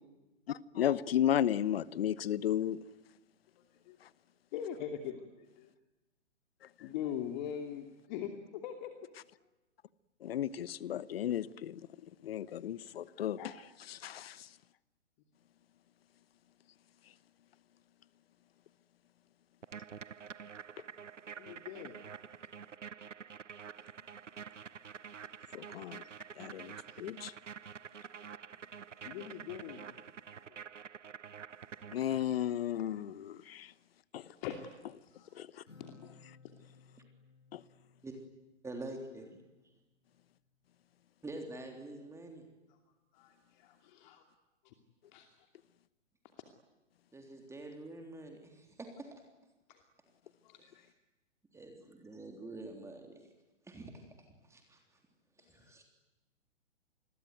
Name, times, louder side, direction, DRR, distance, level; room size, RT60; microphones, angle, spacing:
voice 1, 0.5-2.8 4.0-4.1 10.2-11.9 12.2-13.4 13.9-14.5 25.5-26.0 26.4-27.3 31.9-33.7 34.1-34.3 35.3-35.6 37.5-37.6, left 10 dB, 55° left, 1.1 m, -34 dB
voice 2, 4.5-5.7 6.8-8.9 13.4-13.5 21.4-22.0 26.9-27.0 29.0-29.8 34.4-34.6 35.0-35.3 35.8-35.9 42.7-42.8 43.1-44.2 44.6-44.7 45.1-45.5 49.7-49.8 50.4-50.9, left 9 dB, 40° left, 2.8 m, -42 dB
sound 1, 19.6-32.4, right 7 dB, 85° right, 0.9 m, -48 dB
Acoustic guitar, 35.7-39.3, left 4 dB, 80° left, 7.7 m, -60 dB
voice 3, 38.6-39.3 41.2-42.4 47.1-49.1 51.5-53.2 53.7-54.8 55.5-55.8, right 2 dB, 10° right, 3.5 m, -46 dB
28.5 x 21.5 x 9.4 m
hypercardioid pair, 125°, 36 cm